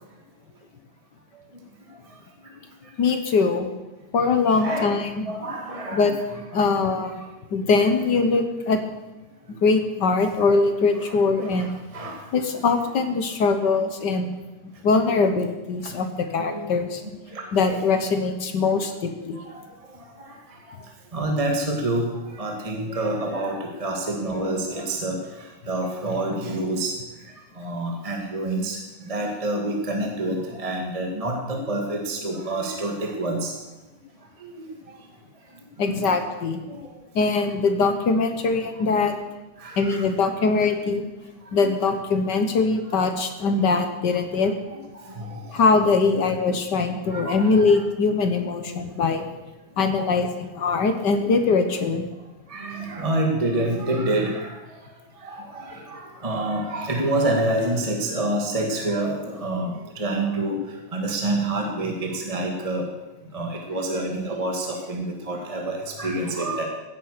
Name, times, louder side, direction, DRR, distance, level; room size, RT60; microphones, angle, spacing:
voice 1, 3.0-3.7 4.1-5.3 5.9-6.1 6.5-7.1 7.5-8.8 9.6-11.7 12.3-14.3 14.8-17.0 17.5-19.4 35.8-36.6 37.1-39.2 39.8-41.0 41.5-44.5 45.5-49.2 49.8-52.0, left 4 dB, 60° left, 7 dB, 1.1 m, -22 dB
voice 2, 4.5-6.1 7.8-7.9 8.5-8.6 11.0-11.1 11.4-11.7 11.9-12.2 12.9-13.0 15.0-15.2 16.5-16.8 17.3-17.4 21.1-22.1 22.4-25.2 25.7-26.9 27.6-28.8 29.1-33.5 34.4-34.5 35.9-36.1 36.7-36.8 39.6-40.0 41.5-41.6 44.4-44.5 45.1-45.4 47.1-47.7 50.0-50.2 52.5-54.5 55.2-60.6 60.9-62.8 63.3-66.7, right 1 dB, 15° right, 1 dB, 1.4 m, -27 dB
17.0 x 10.5 x 6.7 m, 1.1 s
omnidirectional pair, 3.4 m